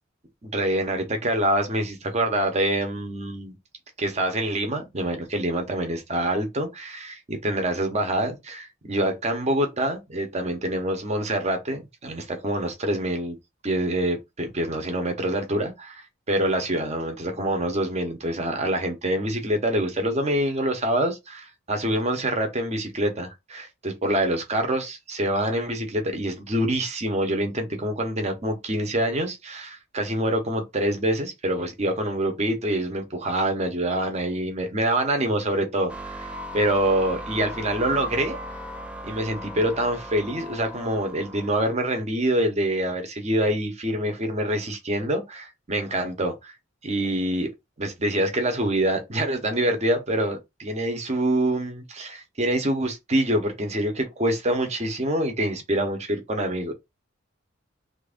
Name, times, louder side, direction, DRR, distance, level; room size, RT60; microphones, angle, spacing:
voice 1, 0.4-3.5 4.0-13.4 13.6-38.4 39.0-46.5 46.8-47.5 47.8-56.7, right 1 dB, 35° right, 0.9 m, -26 dB
sound 1, 35.9-41.6, equal, 5° right, 0.3 m, -37 dB
2.9 x 2.5 x 3.6 m
head